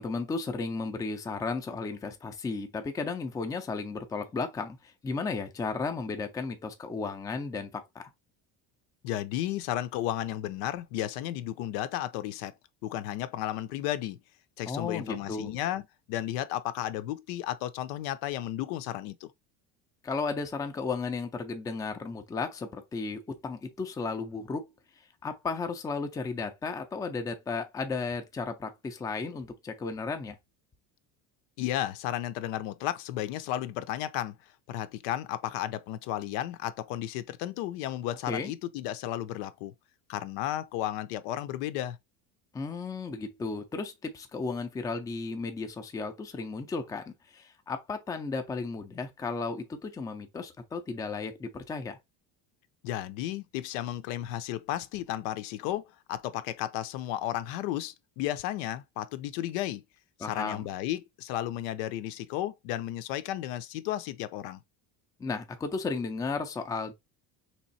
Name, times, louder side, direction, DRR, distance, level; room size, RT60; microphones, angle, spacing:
voice 1, 0.0-8.0 14.7-15.5 20.0-24.7 25.2-30.3 38.3-38.5 42.5-52.0 60.2-60.7 65.2-66.9, left 4 dB, 10° left, 0.4 m, -34 dB
voice 2, 9.0-12.5 12.8-14.2 14.6-19.3 31.6-34.4 34.7-39.7 40.1-42.0 52.8-55.8 56.1-59.8 60.2-64.6, left 13 dB, 85° left, 0.7 m, -33 dB
3.5 x 3.0 x 4.0 m
cardioid pair, 165°, 39 cm